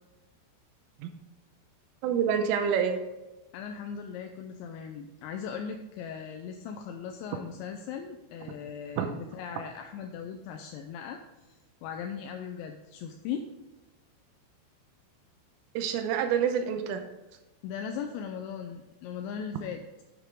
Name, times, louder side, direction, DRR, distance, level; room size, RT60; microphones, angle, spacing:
voice 1, 2.0-3.0 9.0-9.1 15.8-17.0, right 7 dB, 90° right, 6 dB, 3.3 m, -27 dB
voice 2, 3.5-11.2 11.5-13.5 17.6-19.8, left 7 dB, 85° left, 4 dB, 2.6 m, -38 dB
10.0 x 8.7 x 3.7 m, 1.1 s
omnidirectional pair, 5.8 m